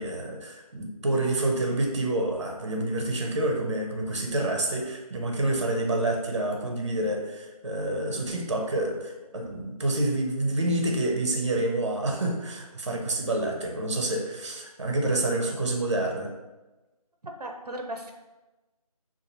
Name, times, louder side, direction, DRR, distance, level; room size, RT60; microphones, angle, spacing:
voice 1, 0.0-16.3, right 2 dB, 45° right, 1 dB, 0.6 m, -28 dB
voice 2, 17.2-18.1, right 1 dB, 85° right, 3 dB, 0.6 m, -36 dB
5.5 x 2.5 x 2.7 m, 1.1 s
figure-of-eight pair, 165°, 20 cm